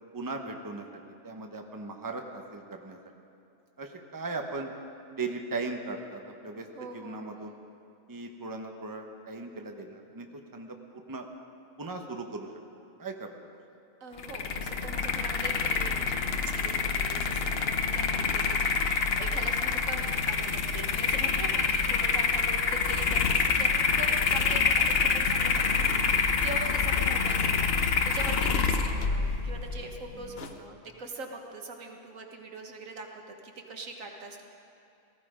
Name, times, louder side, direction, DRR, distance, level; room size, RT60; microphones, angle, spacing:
voice 1, 0.1-0.9 1.2-3.0 3.8-4.7 5.1-7.5 8.1-11.3 11.8-12.5 13.0-13.3 27.0-27.1 30.1-30.4, right 3 dB, 15° right, 3 dB, 1.0 m, -38 dB
voice 2, 6.7-7.4 14.0-34.4, right 3 dB, 90° right, 2 dB, 1.8 m, -42 dB
sound 1, 14.2-30.5, left 5 dB, 55° left, 1.0 m, -27 dB
18.5 x 14.5 x 5.1 m, 2.7 s
omnidirectional pair, 1.3 m